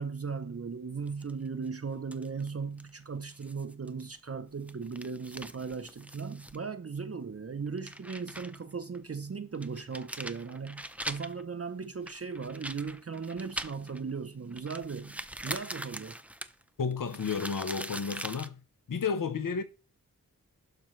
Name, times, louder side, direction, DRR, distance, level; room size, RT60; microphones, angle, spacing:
voice 1, 0.0-16.2, right 5 dB, 45° right, 0.7 m, -37 dB
sound 1, 1.1-1.7 2.1-2.5 2.8-2.9 3.3-4.2 4.5-6.6 7.0-7.1 7.7-8.6 8.9-9.0 9.5-11.4 12.1-14.1 14.5-18.5, right 1 dB, 5° right, 0.8 m, -42 dB
voice 2, 16.8-18.6 18.9-19.6, left 5 dB, 70° left, 1.0 m, -32 dB
12.0 x 5.9 x 3.2 m
wide cardioid pair, 55°, 34 cm